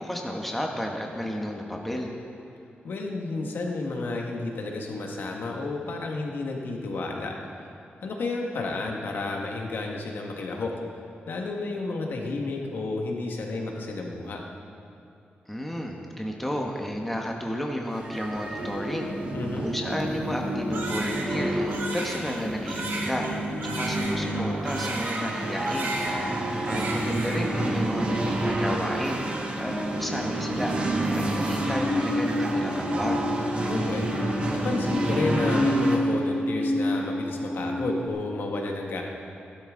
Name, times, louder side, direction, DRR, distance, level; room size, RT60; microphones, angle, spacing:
voice 1, 0.0-2.1 15.5-19.1 19.6-23.3 23.6-25.9 26.6-29.2 29.6-30.7 31.1-33.2, equal, 5° left, 0 dB, 1.0 m, -32 dB
voice 2, 2.8-7.3 8.0-10.7 11.3-14.4 19.3-19.7 33.6-34.0 34.5-39.0, left 3 dB, 70° left, 1 dB, 1.6 m, -31 dB
sound 1, 18.0-36.0, right 1 dB, 35° right, 1.6 m, -29 dB
Crying sobbing, 20.7-25.4 25.7-26.4 26.7-27.6, right 2 dB, 85° right, 2.4 m, -34 dB
Musical instrument, 31.2-38.1, left 1 dB, 45° left, 1.2 m, -28 dB
16.0 x 12.0 x 3.8 m, 2.6 s
wide cardioid pair, 160°, 4 cm